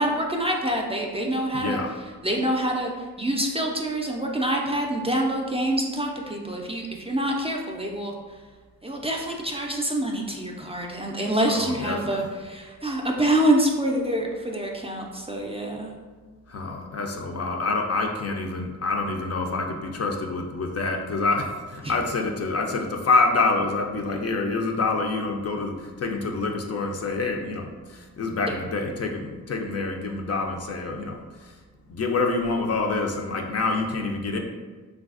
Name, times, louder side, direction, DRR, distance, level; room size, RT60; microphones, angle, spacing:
voice 1, 0.0-1.8 2.2-2.9 3.2-8.1 8.8-15.9 21.8-21.9, right 1 dB, 15° right, 0 dB, 0.4 m, -26 dB
voice 2, 1.5-2.0 11.5-12.2 16.5-31.5 31.9-34.4, left 3 dB, 45° left, 2 dB, 0.4 m, -27 dB
3.2 x 2.3 x 2.4 m, 1.3 s
cardioid pair, 45°, 35 cm